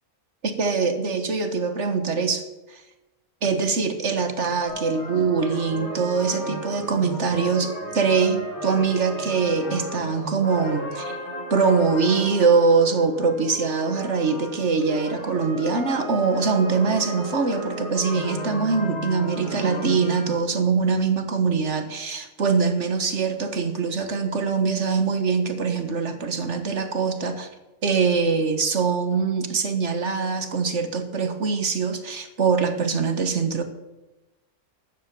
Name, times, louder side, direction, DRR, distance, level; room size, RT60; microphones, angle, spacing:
voice 1, 0.4-2.4 2.7-2.8 3.4-11.2 11.5-27.5 27.8-33.6, right 5 dB, 55° right, 8 dB, 1.8 m, -23 dB
sound 1, 4.7-20.4, equal, 50° left, 7.4 m, -34 dB
13.0 x 10.5 x 7.1 m, 1.0 s
omnidirectional pair, 1.5 m